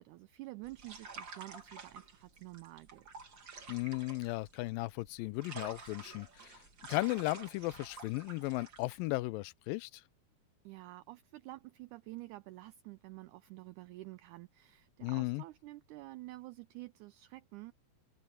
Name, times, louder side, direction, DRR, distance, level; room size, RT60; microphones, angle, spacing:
voice 1, 0.0-3.2 10.6-17.7, right 19 dB, 85° right, 1.7 m, -49 dB
sound 1, 0.6-9.1, right 4 dB, 35° right, 2.7 m, -50 dB
voice 2, 3.7-6.6 6.9-10.0 15.0-15.4, left 21 dB, 85° left, 2.3 m, -36 dB
omnidirectional pair, 4.1 m